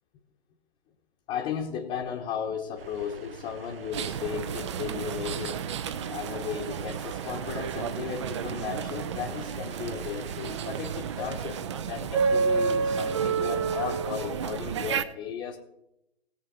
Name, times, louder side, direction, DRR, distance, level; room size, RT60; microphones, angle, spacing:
voice 1, 1.3-5.6 6.1-15.6, left 7 dB, 20° left, -1 dB, 1.1 m, -35 dB
sound 1, 2.8-11.6, right 6 dB, 65° right, 0.7 m, -45 dB
sound 2, 3.9-15.0, right 6 dB, 30° right, 0.5 m, -30 dB
20.0 x 7.5 x 3.9 m, 0.86 s
figure-of-eight pair, 125°, 32 cm